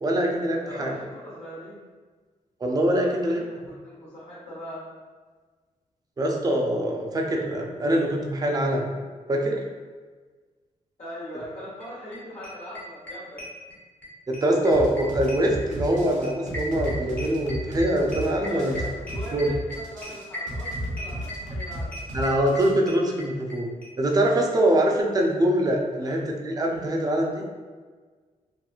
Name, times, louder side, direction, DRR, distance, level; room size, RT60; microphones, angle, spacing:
voice 1, 0.0-0.9 2.6-3.4 6.2-8.9 9.3-9.6 14.3-18.8 19.3-19.5 22.1-23.7 24.0-26.2 26.4-27.4, right 1 dB, 25° right, 1 dB, 0.4 m, -23 dB
voice 2, 0.6-1.8 2.9-4.9 11.0-13.4 18.4-22.0 26.0-26.3, equal, 45° left, -11 dB, 0.9 m, -40 dB
sound 1, 11.8-11.9 12.1-12.2 12.4-14.1 14.3-23.6 23.8-23.9 24.1-24.2 24.4-24.5, left 1 dB, 10° left, 0.7 m, -37 dB
sound 2, 14.7-22.7, equal, 65° right, 0.6 m, -33 dB
2.8 x 2.5 x 2.3 m, 1.4 s
cardioid pair, 115°, 14 cm